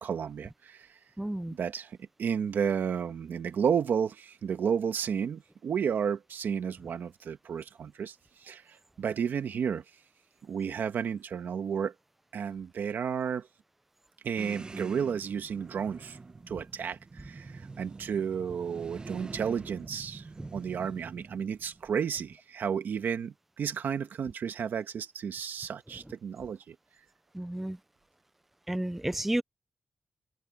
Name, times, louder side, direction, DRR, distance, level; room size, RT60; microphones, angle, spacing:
voice 1, 0.0-1.0 1.5-9.8 10.4-11.9 12.3-13.5 14.2-16.2 16.5-20.3 20.5-26.7, right 7 dB, 75° right, 1.6 m, -32 dB
voice 2, 1.2-1.5 27.4-27.8 28.7-29.4, right 1 dB, 5° right, 0.3 m, -31 dB
sound 1, 14.4-21.9, right 3 dB, 25° right, 0.8 m, -45 dB
wide cardioid pair, 160°, 3 cm